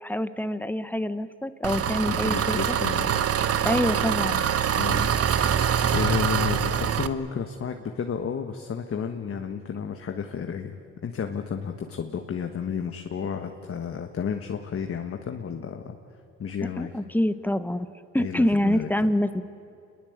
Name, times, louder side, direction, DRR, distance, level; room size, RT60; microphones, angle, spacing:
voice 1, 0.0-2.8 3.6-4.4 16.8-17.9 18.1-19.4, left 1 dB, 5° left, 12 dB, 1.1 m, -26 dB
Engine, 1.6-7.1, right 8 dB, 50° right, 1.0 m, -24 dB
voice 2, 1.9-3.2 4.7-16.0 16.4-16.9 18.2-18.9, left 7 dB, 50° left, 5 dB, 1.5 m, -32 dB
28.0 x 21.5 x 8.1 m, 2.6 s
cardioid pair, 90°, 30 cm